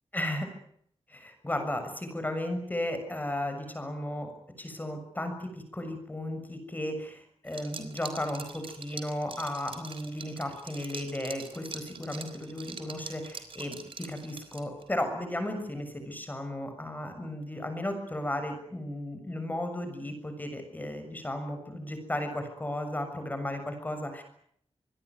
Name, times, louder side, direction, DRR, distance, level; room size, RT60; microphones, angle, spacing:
voice 1, 0.1-0.5 1.1-4.3 4.6-24.2, left 1 dB, 15° left, 7 dB, 6.7 m, -35 dB
Liquid, 7.5-14.9, right 5 dB, 55° right, 3.8 m, -44 dB
26.5 x 21.0 x 9.6 m, 0.68 s
wide cardioid pair, 180°, 11 cm